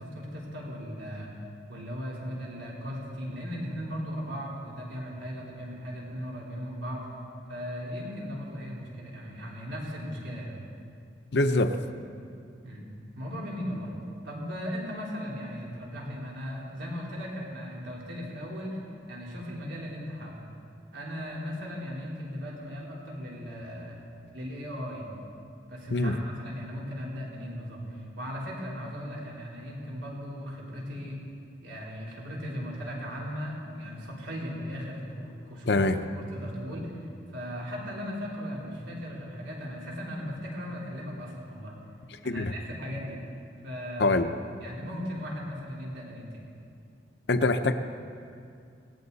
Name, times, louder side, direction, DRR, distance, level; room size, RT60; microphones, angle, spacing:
voice 1, 0.0-1.3 1.7-7.1 7.5-10.6 12.6-12.9 13.1-13.9 14.2-18.8 19.1-20.4 20.9-24.0 24.3-25.1 25.7-31.2 31.6-35.8 36.2-37.0 37.3-41.8 42.2-43.2 43.6-44.2 44.6-46.4, equal, 80° right, -4 dB, 3.8 m, -37 dB
voice 2, 11.3-11.8 25.9-26.2 35.7-36.0 42.2-42.5 44.0-44.3 47.3-47.7, left 2 dB, 60° left, 9 dB, 0.7 m, -24 dB
19.0 x 18.0 x 4.1 m, 2.4 s
head